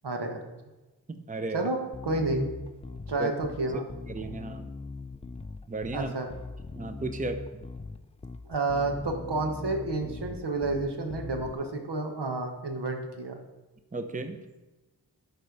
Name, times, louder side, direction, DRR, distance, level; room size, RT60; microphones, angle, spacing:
voice 1, 0.0-0.4 1.5-1.8 2.0-2.5 3.1-3.9 5.9-6.3 8.4-13.4, right 2 dB, 85° right, 4 dB, 1.3 m, -30 dB
voice 2, 1.1-1.6 3.2-3.3 3.7-3.8 4.1-4.7 5.7-6.1 6.8-7.6 13.9-14.4, right 2 dB, 20° right, 7 dB, 0.6 m, -34 dB
Bass guitar, 1.9-11.5, left 3 dB, 15° left, 0.3 m, -41 dB
11.5 x 4.4 x 5.3 m, 1.1 s
wide cardioid pair, 85°, 40 cm